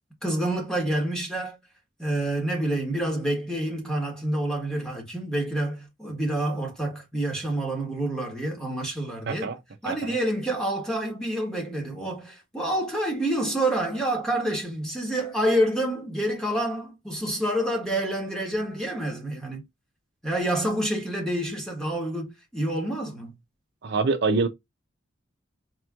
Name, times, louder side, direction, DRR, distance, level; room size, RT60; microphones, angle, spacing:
voice 1, 0.2-1.6 2.0-9.5 9.8-19.6 20.2-23.3, right 1 dB, 5° left, 1.5 m, -28 dB
voice 2, 9.3-9.6 9.8-10.1 23.8-24.5, right 4 dB, 60° right, 0.6 m, -25 dB
4.3 x 3.0 x 2.4 m
head